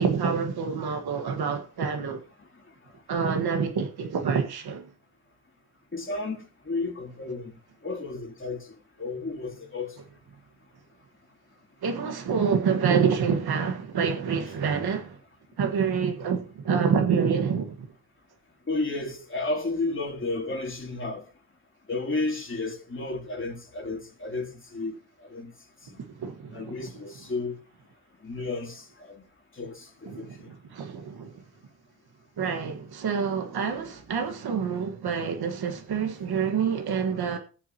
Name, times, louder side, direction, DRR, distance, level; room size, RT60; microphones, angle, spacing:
voice 1, 0.0-2.2 3.1-4.9 11.8-15.2 15.6-17.9 26.0-26.9 30.1-31.4 32.4-37.4, right 6 dB, 75° right, 1.7 m, -27 dB
voice 2, 5.9-7.5 7.8-8.6 9.0-9.9 18.7-21.2 21.9-24.9 25.3-25.5 25.9-26.0 26.5-27.6 28.2-29.2 29.6-30.3, left 3 dB, 30° left, 3.0 m, -32 dB
21.5 x 7.2 x 2.9 m
cardioid pair, 80°, 39 cm